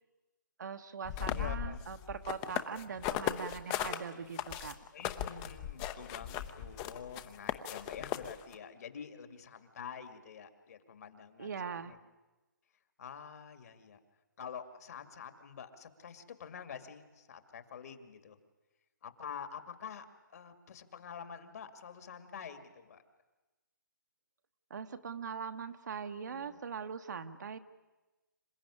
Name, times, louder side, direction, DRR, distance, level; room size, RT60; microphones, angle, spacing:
voice 1, 0.6-4.8 11.4-11.9 24.7-27.6, right 6 dB, 60° right, 7 dB, 1.5 m, -41 dB
sound 1, 1.1-4.0 4.4-8.5, left 12 dB, 20° left, 0.9 m, -37 dB
voice 2, 1.3-1.8 4.9-12.0 13.0-14.0 14.4-18.4 19.0-23.0 26.3-26.6, left 7 dB, 50° left, 9 dB, 2.2 m, -47 dB
27.0 x 15.0 x 10.0 m, 1.1 s
hypercardioid pair, 155°, 11 cm